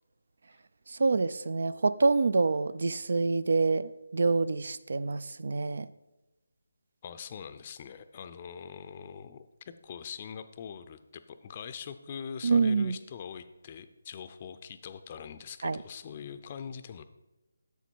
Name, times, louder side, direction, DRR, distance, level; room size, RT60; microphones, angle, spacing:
voice 1, 0.9-5.9 12.4-13.0 15.6-15.8, right 4 dB, 65° right, 16 dB, 0.4 m, -26 dB
voice 2, 7.0-9.5 9.8-17.0, left 7 dB, 30° left, 10 dB, 0.5 m, -43 dB
7.1 x 7.1 x 4.6 m, 1.0 s
figure-of-eight pair, 165°, 0 cm